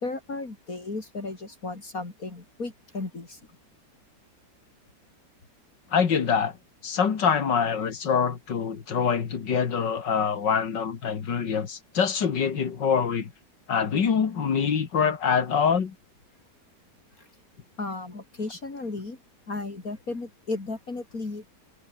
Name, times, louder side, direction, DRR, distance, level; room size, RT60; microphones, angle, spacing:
voice 1, 0.0-3.4 17.2-17.3 17.8-19.2 19.5-21.5, left 3 dB, 50° left, 4.1 m, -34 dB
voice 2, 5.9-6.6 6.8-13.3 13.7-15.9, left 6 dB, 90° left, 2.6 m, -25 dB
omnidirectional pair, 1.9 m